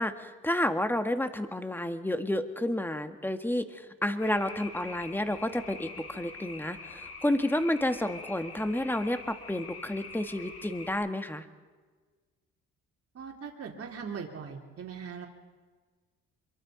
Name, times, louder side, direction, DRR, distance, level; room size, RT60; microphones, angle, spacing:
voice 1, 0.0-11.4, left 1 dB, 5° left, 8 dB, 1.9 m, -30 dB
sound 1, 4.2-10.9, left 4 dB, 50° left, 3.8 m, -45 dB
voice 2, 13.1-15.3, right 6 dB, 50° right, 0 dB, 3.7 m, -40 dB
26.0 x 23.0 x 5.2 m, 1.4 s
cardioid pair, 90°, 30 cm